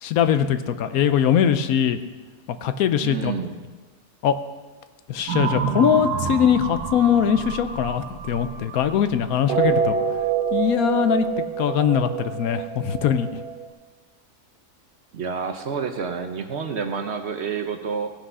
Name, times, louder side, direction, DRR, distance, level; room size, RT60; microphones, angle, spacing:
voice 1, 0.0-2.0 2.5-3.3 4.2-4.4 5.1-9.9 10.5-11.3 11.6-13.4, left 8 dB, 70° left, 10 dB, 1.1 m, -21 dB
voice 2, 3.0-3.6 15.1-18.1, right 5 dB, 55° right, 6 dB, 0.8 m, -29 dB
sound 1, 5.3-8.9 9.3-13.7, right 7 dB, 85° right, 1.3 m, -27 dB
16.5 x 6.2 x 5.5 m, 1.3 s
omnidirectional pair, 1.6 m